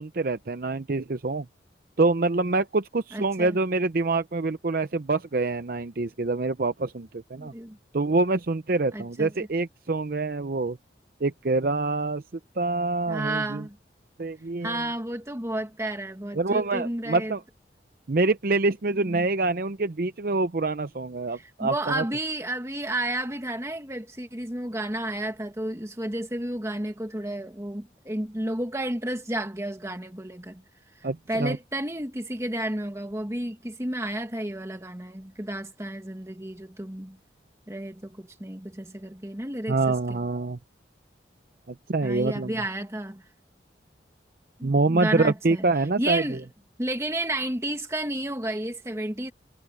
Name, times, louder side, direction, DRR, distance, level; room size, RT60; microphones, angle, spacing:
voice 1, 0.0-1.5 2.0-7.5 7.9-10.8 11.2-12.2 12.6-13.6 14.2-14.7 16.4-17.4 18.1-22.0 31.0-31.6 39.7-40.6 41.9-42.6 44.6-46.2, right 3 dB, 50° right, 0.6 m, -25 dB
voice 2, 3.1-3.6 7.4-7.8 8.9-9.3 13.1-13.8 14.6-17.3 19.0-19.3 21.3-30.6 31.0-37.2 37.7-40.2 42.0-43.2 44.6-45.6 46.0-46.5 46.8-49.3, right 1 dB, 15° right, 1.7 m, -32 dB
head